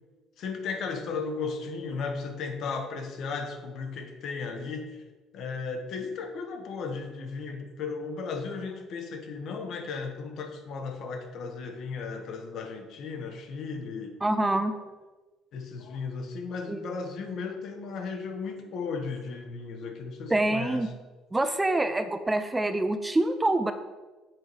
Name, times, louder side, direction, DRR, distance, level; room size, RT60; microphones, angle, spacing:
voice 1, 0.4-5.0 5.3-14.2 15.5-20.9, left 4 dB, 55° left, 5 dB, 1.1 m, -35 dB
voice 2, 14.2-14.7 16.7-16.8 20.3-20.9 21.3-23.7, right 2 dB, 10° right, 9 dB, 0.4 m, -26 dB
7.8 x 4.7 x 4.7 m, 1.2 s
cardioid pair, 130°, 0 cm